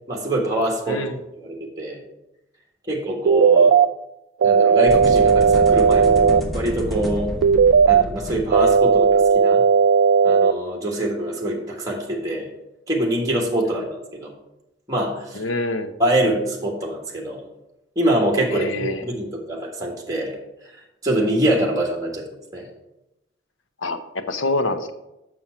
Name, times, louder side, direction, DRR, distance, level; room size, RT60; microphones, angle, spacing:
voice 1, 0.1-1.0 1.4-2.0 2.9-3.8 4.4-7.3 7.9-9.6 10.2-12.5 12.9-14.3 14.9-15.4 16.0-17.4 17.9-20.4 21.0-22.2 22.5-22.7, right 1 dB, 20° right, 0 dB, 1.5 m, -24 dB
sound 1, 3.3-3.9 4.4-6.4 7.4-8.0 8.5-10.5, right 6 dB, 85° right, 0.3 m, -15 dB
sound 2, 4.9-9.1, equal, ahead, 0.9 m, -30 dB
voice 2, 15.3-15.9 18.5-19.0 23.8-24.9, left 2 dB, 85° left, 9 dB, 0.8 m, -26 dB
7.2 x 6.2 x 5.7 m, 0.91 s
head